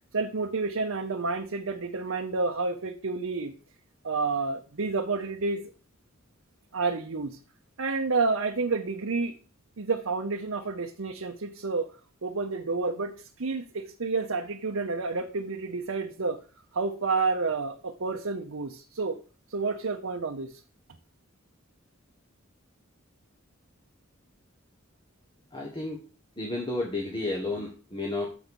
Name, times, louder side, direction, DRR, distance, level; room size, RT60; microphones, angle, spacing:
voice 1, 0.1-3.5 4.0-5.6 6.7-7.4 7.8-9.3 9.8-11.9 12.2-16.4 16.7-19.2 19.5-20.5, right 4 dB, 75° right, 2 dB, 0.8 m, -29 dB
voice 2, 25.5-26.0 26.4-28.3, left 2 dB, 25° left, 0 dB, 1.3 m, -32 dB
7.0 x 5.2 x 6.2 m, 0.37 s
head